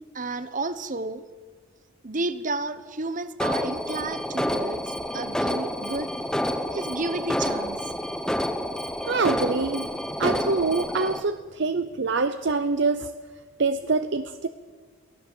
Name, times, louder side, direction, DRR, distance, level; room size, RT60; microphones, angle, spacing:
voice 1, 0.1-1.2 2.0-4.8 5.1-6.1 6.7-7.8, right 2 dB, 40° right, 13 dB, 1.0 m, -31 dB
Alarm, 3.4-11.2, equal, 5° left, 0.9 m, -29 dB
voice 2, 9.0-9.9 10.2-13.1 13.6-14.5, right 4 dB, 60° right, 10 dB, 0.7 m, -25 dB
23.0 x 15.5 x 7.8 m, 1.5 s
head